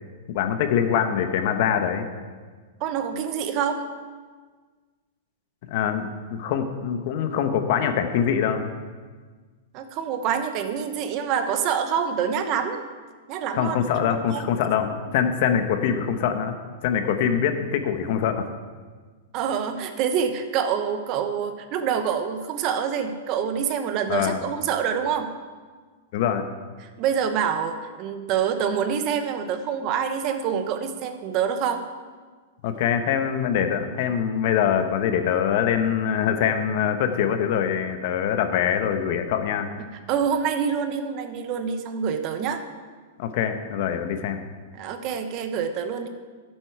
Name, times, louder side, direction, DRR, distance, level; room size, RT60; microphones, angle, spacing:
voice 1, 0.3-2.1 5.7-8.7 13.5-16.5 16.8-18.5 24.1-24.4 26.1-26.4 32.6-39.7 43.2-44.4, left 8 dB, 55° left, 8 dB, 0.9 m, -24 dB
voice 2, 2.8-3.8 9.7-12.8 13.3-14.5 14.8-15.0 19.3-25.3 26.8-31.9 40.1-42.6 44.7-46.1, right 7 dB, 40° right, 8 dB, 0.9 m, -26 dB
11.5 x 7.6 x 4.6 m, 1.5 s
hypercardioid pair, 140°, 0 cm